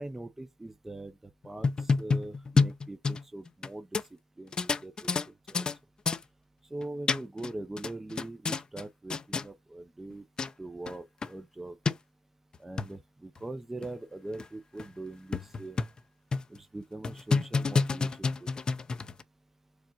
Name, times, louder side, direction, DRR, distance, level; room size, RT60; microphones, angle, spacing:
voice 1, 0.0-3.9 4.4-5.7 6.7-10.2 10.6-11.8 12.6-15.8 16.5-18.5, right 2 dB, 15° right, 0.6 m, -42 dB
sound 1, 1.4-3.7 3.9-4.0 4.5-5.8 6.1-6.2 6.8-7.5 7.8-8.8 9.1-9.5 10.1-10.2 10.4-10.5 10.9-11.0 11.2-11.3 11.9-12.0 12.5-12.9 13.4-13.5 13.8-13.9 14.4-14.5 14.8-14.9 15.3-16.0 16.3-16.6 17.0-19.2, left 4 dB, 35° left, 0.6 m, -28 dB
4.8 x 2.5 x 4.5 m
supercardioid pair, 75°, 2 cm